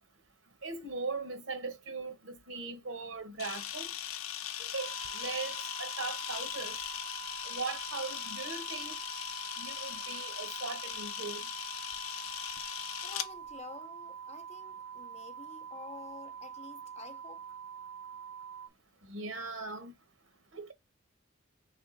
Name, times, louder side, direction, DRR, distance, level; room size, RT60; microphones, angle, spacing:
voice 1, 0.6-3.9 4.6-6.8 7.4-9.0 9.6-11.5 19.1-19.9 20.5-20.7, right 4 dB, 75° right, 1.0 m, -39 dB
Camera, 3.4-13.3, left 10 dB, 90° left, 0.6 m, -39 dB
sound 1, 4.8-18.7, right 7 dB, 55° right, 0.4 m, -45 dB
voice 2, 13.0-17.4, left 4 dB, 30° left, 0.5 m, -49 dB
3.5 x 3.4 x 3.8 m
head